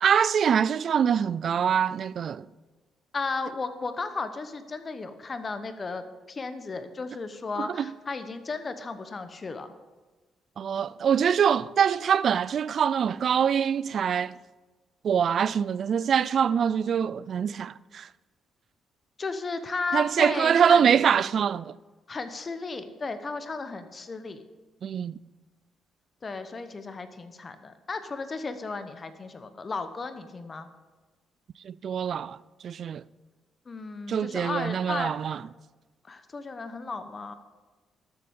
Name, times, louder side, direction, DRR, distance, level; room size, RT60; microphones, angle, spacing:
voice 1, 0.0-2.5 7.6-7.9 10.6-14.4 15.0-18.1 19.9-21.7 24.8-25.2 31.6-32.4 32.6-33.0 34.1-35.4, right 8 dB, 55° right, 0.3 m, -24 dB
voice 2, 3.1-9.7 19.2-21.2 22.1-24.4 26.2-30.7 33.7-35.1 36.0-37.3, left 4 dB, 35° left, 0.9 m, -34 dB
13.0 x 7.7 x 5.4 m
cardioid pair, 90°, 0 cm